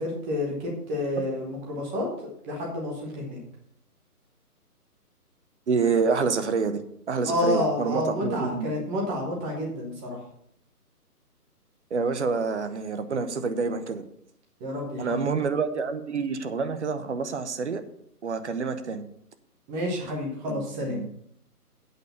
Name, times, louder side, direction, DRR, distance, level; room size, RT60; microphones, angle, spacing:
voice 1, 0.0-3.4 7.2-10.2 14.6-15.1 15.3-15.4 19.7-21.0, left 1 dB, 10° right, 0 dB, 0.9 m, -29 dB
voice 2, 5.7-6.8 7.1-8.7 11.9-14.0 15.0-17.8 18.2-19.0 20.5-21.1, right 5 dB, 45° right, 9 dB, 1.0 m, -27 dB
8.3 x 6.4 x 6.8 m, 0.73 s
figure-of-eight pair, 145°, 47 cm